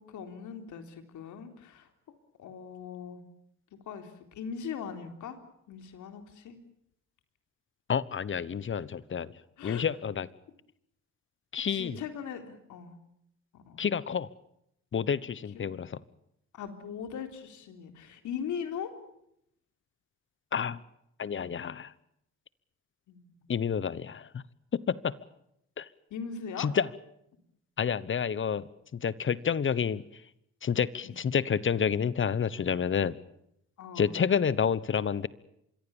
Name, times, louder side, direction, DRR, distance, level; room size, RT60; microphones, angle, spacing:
voice 1, 0.0-1.9 2.4-3.2 3.9-5.4 5.7-6.6 9.6-9.8 11.7-13.0 13.5-13.8 16.5-18.9 23.1-23.3 26.1-26.7 31.7-31.8 33.8-34.2, left 7 dB, 75° left, 7 dB, 3.6 m, -40 dB
voice 2, 7.9-9.3 9.6-10.3 11.5-12.0 13.8-14.3 14.9-16.0 20.5-20.8 21.2-21.9 23.5-24.4 24.7-25.2 25.8-25.9 26.6-26.9 27.8-28.7 28.9-30.0 30.6-33.2 34.0-35.3, left 7 dB, 40° left, 19 dB, 1.1 m, -29 dB
26.0 x 22.5 x 7.2 m, 0.75 s
cardioid pair, 90°, 30 cm